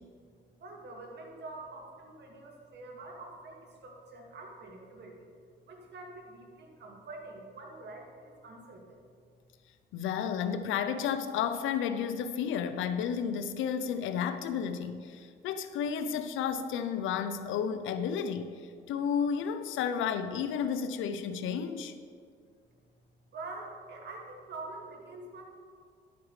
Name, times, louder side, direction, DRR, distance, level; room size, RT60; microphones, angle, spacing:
voice 1, 0.6-5.2 5.7-9.0 23.3-25.4, right 2 dB, 60° right, 0 dB, 2.0 m, -45 dB
voice 2, 9.9-21.9, left 7 dB, 85° left, 10 dB, 0.5 m, -32 dB
11.0 x 8.3 x 3.2 m, 2.1 s
cardioid pair, 90°, 20 cm